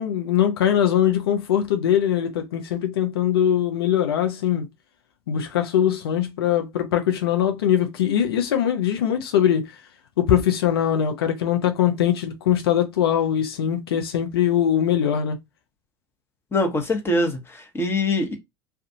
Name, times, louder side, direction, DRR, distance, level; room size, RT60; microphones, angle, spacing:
voice 1, 0.0-4.7 5.3-9.7 10.2-15.4, left 9 dB, 80° left, 0.6 m, -21 dB
voice 2, 16.5-18.4, left 2 dB, 20° left, 1.0 m, -23 dB
2.5 x 2.3 x 2.7 m
hypercardioid pair, 80°, 13 cm